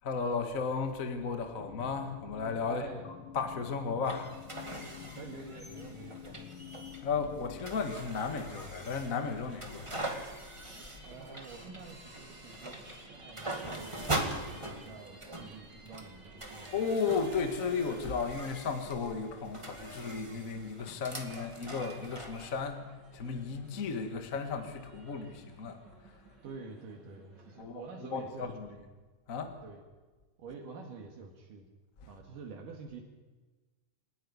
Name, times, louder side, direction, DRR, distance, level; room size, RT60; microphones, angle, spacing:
voice 1, 0.0-2.9 3.3-4.7 7.0-10.2 10.6-10.8 16.7-26.2 27.6-28.7 29.3-29.6 32.0-32.1, left 5 dB, 35° left, 1.3 m, -35 dB
sound 1, 1.6-7.7, left 10 dB, 75° left, 2.4 m, -48 dB
voice 2, 2.7-3.1 5.1-6.7 11.0-12.8 13.0-16.7 26.4-28.4 28.7-28.8 29.6-29.8 30.4-31.7 32.1-33.0, right 4 dB, 70° right, 3.4 m, -48 dB
sound 2, 4.0-22.5, right 1 dB, 15° right, 1.0 m, -42 dB
sound 3, 8.4-27.6, right 2 dB, 35° right, 2.6 m, -56 dB
27.5 x 10.0 x 9.8 m
omnidirectional pair, 4.0 m